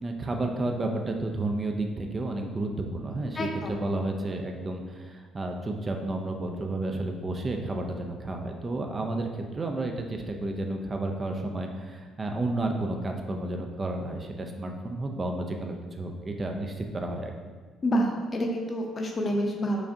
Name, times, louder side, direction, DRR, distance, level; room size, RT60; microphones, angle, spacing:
voice 1, 0.0-17.3, right 2 dB, 30° right, 3 dB, 0.4 m, -31 dB
voice 2, 3.3-3.9 17.8-19.8, equal, 35° left, 1 dB, 0.6 m, -28 dB
4.8 x 2.5 x 2.6 m, 1.4 s
cardioid pair, 95°, 0 cm